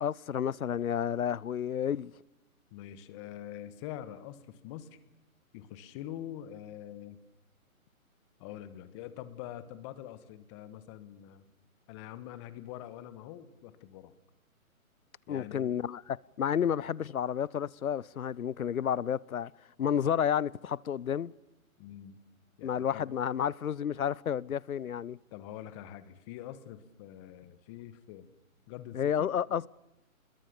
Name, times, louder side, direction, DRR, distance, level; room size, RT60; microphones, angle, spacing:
voice 1, 0.0-2.1 15.3-19.5 19.8-21.3 22.6-25.2 28.9-29.7, left 8 dB, 75° left, 0.8 m, -31 dB
voice 2, 2.7-4.9 5.5-7.2 8.4-11.4 11.9-14.1 15.3-15.7 21.8-22.2 22.6-23.2 25.3-28.3 28.7-29.3, left 12 dB, 20° left, 1.4 m, -45 dB
28.0 x 21.5 x 6.9 m
hypercardioid pair, 150°, 43 cm